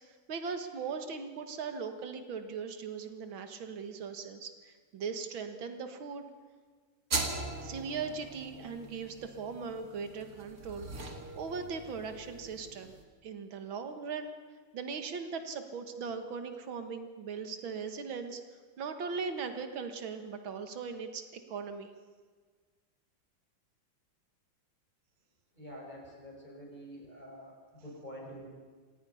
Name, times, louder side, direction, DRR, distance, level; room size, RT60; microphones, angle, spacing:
voice 1, 0.0-6.3 7.6-10.9 11.4-12.9 13.2-14.3 14.7-18.4 18.8-21.9, right 5 dB, 85° right, 7 dB, 2.3 m, -39 dB
sound 1, 7.1-13.0, right 3 dB, 45° right, 2.6 m, -40 dB
voice 2, 25.5-28.5, equal, 20° left, -2 dB, 5.5 m, -47 dB
26.5 x 19.0 x 5.7 m, 1.5 s
omnidirectional pair, 2.1 m